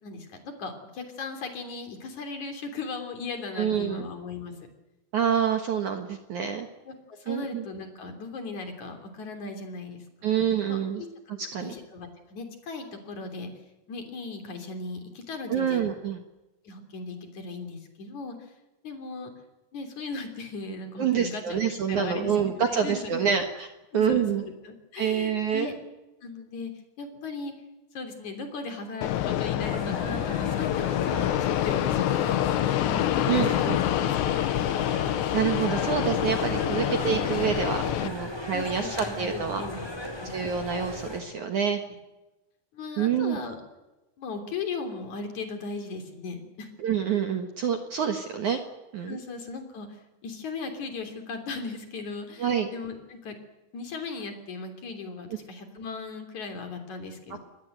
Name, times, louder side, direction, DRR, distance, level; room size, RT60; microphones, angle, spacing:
voice 1, 0.0-4.5 6.9-10.3 10.7-13.5 13.9-15.9 16.6-18.4 18.8-19.3 19.7-21.6 21.9-23.3 23.9-25.7 26.2-26.7 27.0-27.5 27.9-32.3 32.7-34.3 38.5-40.4 42.7-43.6 44.2-46.7 49.1-49.9 50.2-53.4 53.7-57.4, left 4 dB, 40° left, 6 dB, 4.1 m, -37 dB
voice 2, 3.5-4.1 5.1-6.7 7.3-7.6 10.2-11.0 11.4-11.7 15.5-16.2 21.0-23.7 23.9-24.4 25.0-25.7 33.3-33.8 35.3-39.6 40.2-41.8 43.0-43.4 46.8-48.6 48.9-49.2 52.4-52.7 57.3-57.4, right 7 dB, 65° right, 5 dB, 1.9 m, -27 dB
Fixed-wing aircraft airplane, 29.0-38.1, left 12 dB, 75° left, 3.0 m, -26 dB
sound 1, 29.6-41.2, left 1 dB, 5° left, 3.8 m, -37 dB
26.0 x 20.0 x 8.0 m, 1.0 s
omnidirectional pair, 5.6 m